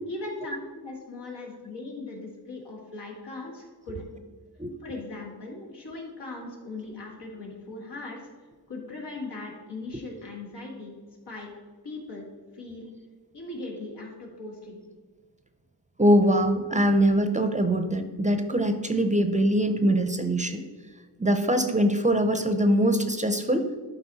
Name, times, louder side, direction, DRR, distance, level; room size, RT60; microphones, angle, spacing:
voice 1, 0.1-4.2 4.8-8.2 8.7-10.9 11.3-11.5 11.8-12.3 12.5-12.9 13.3-14.8, left 2 dB, 85° left, -1 dB, 1.9 m, -39 dB
voice 2, 16.0-20.6 21.2-23.7, equal, 20° right, 7 dB, 0.5 m, -23 dB
11.5 x 4.2 x 4.0 m, 1.4 s
wide cardioid pair, 85°, 40 cm